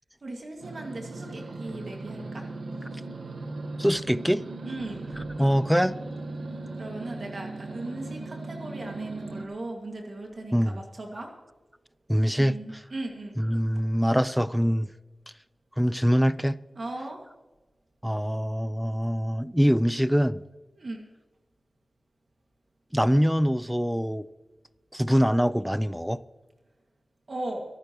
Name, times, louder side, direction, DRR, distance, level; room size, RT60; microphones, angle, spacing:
voice 1, 0.2-2.4 4.7-5.1 6.8-11.3 12.4-13.4 16.8-17.2 20.8-21.0 27.3-27.7, right 2 dB, 60° right, 1 dB, 2.3 m, -37 dB
sound 1, 0.6-9.4, right 2 dB, 85° right, 1.3 m, -38 dB
voice 2, 3.8-4.4 5.4-5.9 10.5-10.8 12.1-12.8 13.4-14.9 15.8-16.6 18.0-20.4 22.9-24.3 24.9-26.2, equal, ahead, 17 dB, 0.6 m, -24 dB
23.0 x 11.5 x 3.2 m, 1.2 s
cardioid pair, 55°, 0 cm